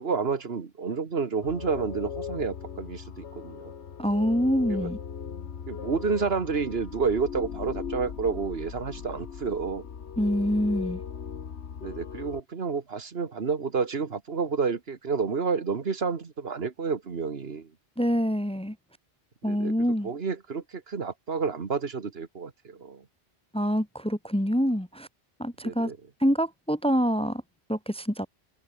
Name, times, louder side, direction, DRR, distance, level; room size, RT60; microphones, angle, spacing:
voice 1, 0.0-3.7 4.7-4.9 5.7-9.9 11.8-17.7 19.5-19.7 20.0-23.0 25.6-26.0, right 5 dB, 65° right, 1.8 m, -30 dB
sound 1, 1.4-12.4, left 7 dB, 85° left, 1.5 m, -38 dB
voice 2, 4.0-5.0 10.2-11.0 18.0-18.8 19.4-20.1 23.5-25.1 25.4-25.9 26.2-27.4 27.7-28.3, equal, 5° left, 0.7 m, -26 dB
open air
omnidirectional pair, 1.1 m